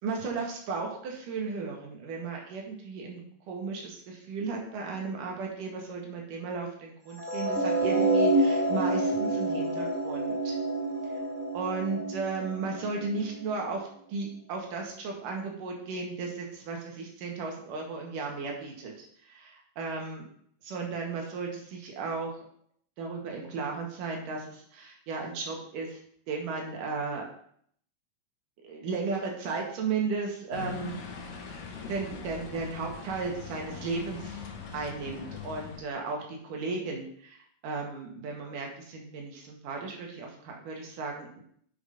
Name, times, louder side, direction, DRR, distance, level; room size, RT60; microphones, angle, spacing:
voice 1, 0.0-10.6 11.5-18.9 19.2-20.3 20.6-22.4 23.0-26.0 26.3-27.2 28.6-31.0 31.9-34.4 34.7-37.4 37.6-41.4, right 4 dB, 75° right, 0 dB, 3.1 m, -35 dB
sound 1, 7.2-13.4, right 2 dB, 15° right, 3.1 m, -28 dB
sound 2, 30.5-35.8, left 5 dB, 90° left, 2.8 m, -41 dB
7.6 x 5.4 x 5.1 m, 0.63 s
omnidirectional pair, 3.8 m